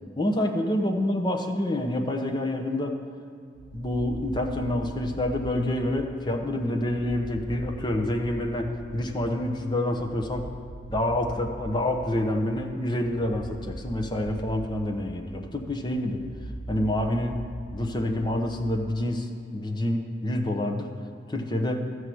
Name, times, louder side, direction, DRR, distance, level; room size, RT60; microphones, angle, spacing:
voice 1, 0.2-3.0 3.7-10.5 10.9-16.2 16.7-17.4 17.7-19.3 19.5-20.9 21.3-21.9, left 1 dB, 25° left, 2 dB, 0.9 m, -27 dB
sound 1, 3.5-19.1, right 1 dB, 70° left, 1.1 m, -41 dB
13.0 x 4.8 x 7.7 m, 2.3 s
head